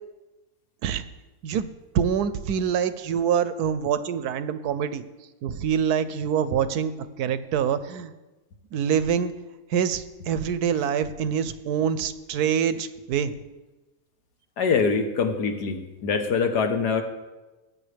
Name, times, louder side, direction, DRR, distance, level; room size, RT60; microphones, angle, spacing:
voice 1, 1.9-5.0 5.4-6.9 7.2-8.1 8.7-9.3 9.7-13.3, right 8 dB, 75° right, 13 dB, 1.1 m, -25 dB
voice 2, 14.6-17.0, left 5 dB, 75° left, 5 dB, 1.7 m, -24 dB
18.5 x 8.7 x 3.4 m, 1.1 s
omnidirectional pair, 1.8 m